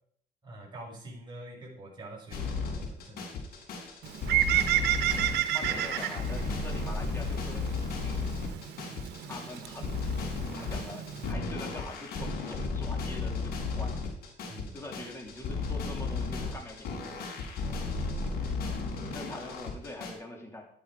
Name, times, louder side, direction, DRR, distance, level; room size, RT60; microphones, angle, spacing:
voice 1, 0.4-3.3 14.5-14.8 17.9-18.6, right 1 dB, 25° right, -2 dB, 6.4 m, -46 dB
sound 1, 2.3-20.1, left 4 dB, 65° left, 4.6 m, -34 dB
Bird, 4.0-11.3, right 12 dB, 75° right, 1.1 m, -32 dB
voice 2, 5.5-7.7 8.0-8.4 9.3-10.0 10.5-14.0 14.7-17.4 19.1-20.7, left 1 dB, 15° left, 1 dB, 3.4 m, -44 dB
12.5 x 11.0 x 5.0 m, 0.63 s
cardioid pair, 110°, 17 cm